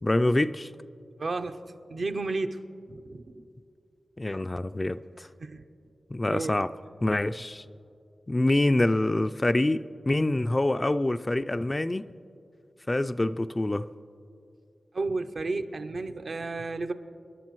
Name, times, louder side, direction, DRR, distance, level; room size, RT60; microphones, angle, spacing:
voice 1, 0.0-0.7 4.2-5.3 6.1-6.7 7.0-7.6 8.3-12.1 12.9-13.9, left 1 dB, 30° left, 11 dB, 0.3 m, -26 dB
voice 2, 1.2-1.6 1.9-2.6 2.9-3.4 5.4-5.6 6.3-6.5 14.9-16.9, right 3 dB, 70° right, 7 dB, 0.6 m, -32 dB
28.0 x 11.5 x 3.1 m, 2.6 s
cardioid pair, 55°, 0 cm